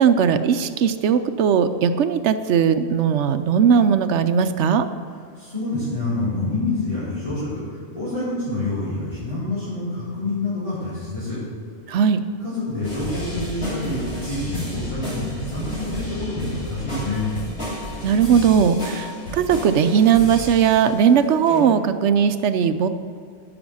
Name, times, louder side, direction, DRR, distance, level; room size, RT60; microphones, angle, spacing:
voice 1, 0.0-4.9 11.9-12.2 18.0-22.9, right 7 dB, 70° right, 10 dB, 0.9 m, -18 dB
voice 2, 5.4-11.4 12.4-17.3, left 2 dB, 25° left, -13 dB, 3.8 m, -27 dB
sound 1, 12.8-21.0 21.5-21.6, equal, 55° left, 3.1 m, -32 dB
15.0 x 6.0 x 6.3 m, 2.2 s
omnidirectional pair, 1.3 m